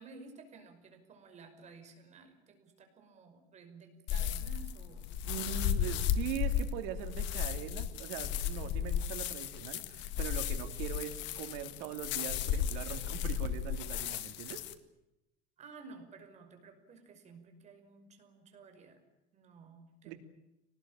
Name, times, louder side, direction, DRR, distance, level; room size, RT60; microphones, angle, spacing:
voice 1, 0.0-6.3 15.6-19.0 19.3-20.1, right 4 dB, 35° right, 6 dB, 5.5 m, -54 dB
sound 1, 4.1-14.7, left 9 dB, 65° left, 1.9 m, -34 dB
voice 2, 5.2-14.6 20.1-20.2, right 11 dB, 85° right, 6 dB, 3.0 m, -41 dB
24.5 x 19.5 x 9.0 m, 0.92 s
cardioid pair, 145°, 21 cm